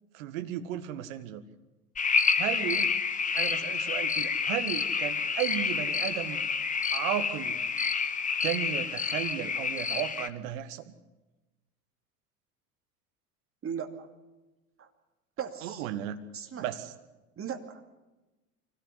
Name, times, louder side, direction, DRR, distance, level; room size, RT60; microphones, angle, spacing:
voice 1, 0.1-1.4 2.3-2.9 3.3-6.5 6.9-7.6 8.4-10.9 15.6-16.2 16.6-16.9, right 12 dB, 60° right, 10 dB, 1.8 m, -34 dB
sound 1, 2.0-10.3, left 5 dB, 15° left, 1.1 m, -29 dB
voice 2, 13.6-14.1 14.8-14.9 15.4-15.9 16.3-16.7 17.4-17.8, right 7 dB, 30° right, 6 dB, 2.5 m, -37 dB
24.0 x 17.5 x 8.3 m, 1.1 s
figure-of-eight pair, 75°, 46 cm